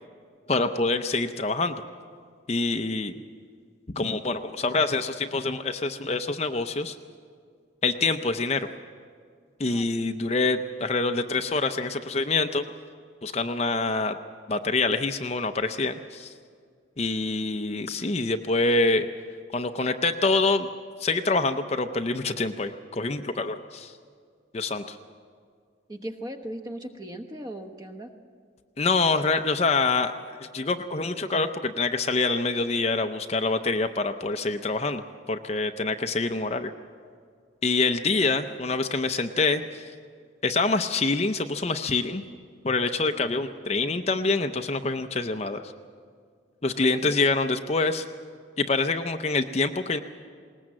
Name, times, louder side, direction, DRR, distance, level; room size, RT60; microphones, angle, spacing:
voice 1, 0.5-1.8 2.5-3.1 3.9-7.0 7.8-8.7 9.6-12.6 13.2-14.2 14.5-16.3 17.0-19.1 19.5-20.7 21.0-23.9 24.5-25.0 28.8-30.1 30.4-36.7 37.6-39.8 40.4-42.2 42.6-45.6 46.6-48.1 48.6-50.0, left 3 dB, 35° left, 7 dB, 0.6 m, -26 dB
voice 2, 25.9-28.1 47.0-47.2, right 1 dB, 20° right, 5 dB, 1.1 m, -38 dB
20.0 x 19.0 x 7.6 m, 2.1 s
head